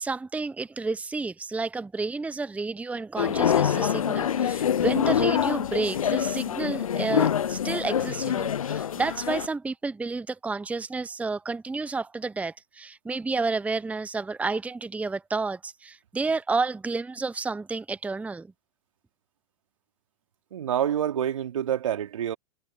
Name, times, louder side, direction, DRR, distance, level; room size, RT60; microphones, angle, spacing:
voice 1, 0.0-18.5, right 3 dB, 10° right, 0.9 m, -30 dB
sound 1, 3.2-9.5, left 9 dB, 85° left, 0.4 m, -25 dB
voice 2, 20.5-22.4, right 10 dB, 70° right, 3.0 m, -27 dB
figure-of-eight pair, 95°, 17 cm